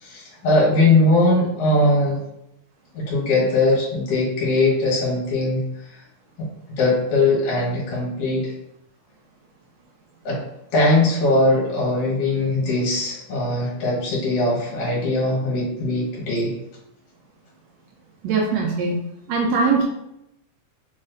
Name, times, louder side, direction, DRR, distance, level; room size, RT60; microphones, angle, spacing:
voice 1, 0.0-2.2 2.9-5.6 6.8-8.5 10.2-10.4 10.7-16.5, left 2 dB, 55° left, -4 dB, 1.8 m, -20 dB
voice 2, 18.2-19.0 19.3-19.8, right 4 dB, 90° right, -1 dB, 1.4 m, -21 dB
4.8 x 4.1 x 2.5 m, 0.85 s
omnidirectional pair, 3.8 m